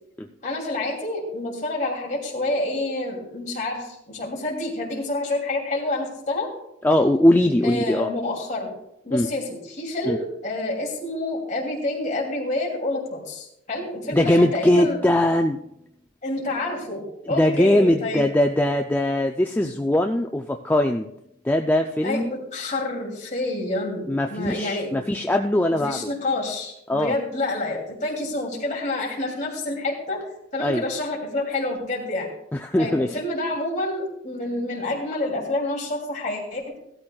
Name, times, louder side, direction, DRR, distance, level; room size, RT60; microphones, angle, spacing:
voice 1, 0.4-6.5 7.6-8.7 9.0-15.0 16.2-18.3 22.0-25.0 25.7-30.2 30.5-32.3 32.8-36.8, left 2 dB, 40° left, -2 dB, 2.7 m, -28 dB
voice 2, 6.8-8.1 9.1-9.3 10.0-10.2 14.1-15.6 17.3-21.1 21.4-22.3 24.1-26.1 26.9-27.2 30.6-30.8 32.5-33.1, left 1 dB, 10° left, 4 dB, 0.3 m, -21 dB
16.0 x 13.0 x 2.3 m, 0.80 s
head